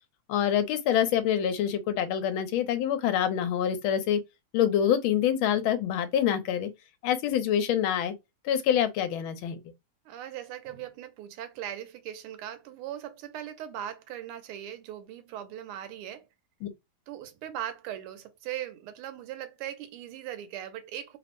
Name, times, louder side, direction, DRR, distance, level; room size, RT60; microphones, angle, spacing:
voice 1, 0.3-4.2 4.5-6.7 7.0-8.1 8.4-9.6 16.6-16.7, left 9 dB, 75° left, 1.4 m, -26 dB
voice 2, 10.0-16.3 17.1-21.2, right 11 dB, 90° right, 1.5 m, -39 dB
3.6 x 2.0 x 2.9 m
omnidirectional pair, 2.4 m